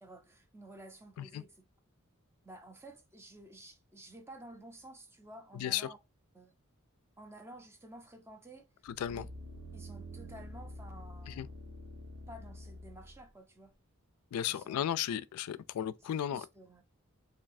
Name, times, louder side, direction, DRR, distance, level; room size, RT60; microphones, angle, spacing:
voice 1, 0.0-1.6 2.4-6.0 6.3-6.6 7.2-8.7 9.1-9.3 9.7-11.5 12.3-13.7 14.5-14.8 16.0-16.8, right 1 dB, 10° right, 0.4 m, -52 dB
voice 2, 5.5-5.9 8.9-9.3 11.3-11.5 14.3-16.5, left 10 dB, 85° left, 0.3 m, -35 dB
sound 1, 8.9-13.2 13.7-13.8, equal, 80° right, 0.6 m, -47 dB
3.1 x 2.7 x 2.5 m
head